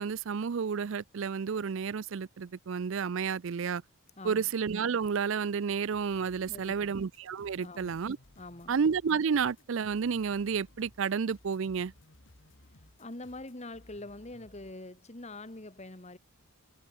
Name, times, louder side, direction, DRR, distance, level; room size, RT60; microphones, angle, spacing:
voice 1, 0.0-3.8 4.2-8.2 8.7-11.9, right 6 dB, 60° right, 0.4 m, -31 dB
voice 2, 4.2-4.5 6.5-7.0 7.6-8.0 8.4-8.8 12.7-16.2, left 2 dB, 30° left, 1.6 m, -45 dB
sound 1, 5.7-14.8, left 1 dB, 55° left, 2.4 m, -59 dB
head